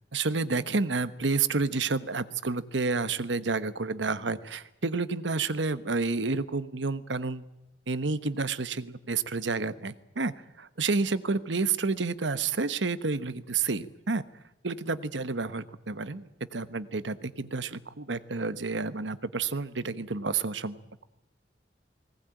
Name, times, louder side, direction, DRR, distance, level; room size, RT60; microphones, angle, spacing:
voice 1, 0.1-7.4 7.9-14.2 14.6-21.0, right 4 dB, 90° right, 14 dB, 1.1 m, -30 dB
20.5 x 18.5 x 9.0 m, 0.94 s
head